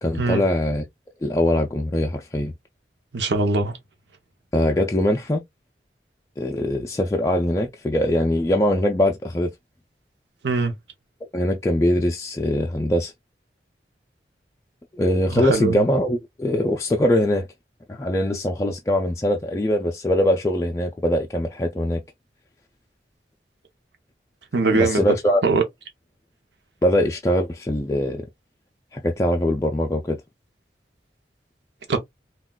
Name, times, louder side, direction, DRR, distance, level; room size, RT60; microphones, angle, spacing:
voice 1, 0.0-0.8 1.2-2.5 4.5-5.4 6.4-9.5 11.3-13.1 14.9-17.5 17.9-22.0 24.7-25.4 26.8-28.3 28.9-30.2, left 1 dB, 15° left, 0.3 m, -22 dB
voice 2, 3.1-3.8 10.4-10.7 15.4-15.8 24.5-25.1 25.4-25.6 31.9-32.0, right 3 dB, 85° right, 0.7 m, -21 dB
3.8 x 2.3 x 2.2 m
head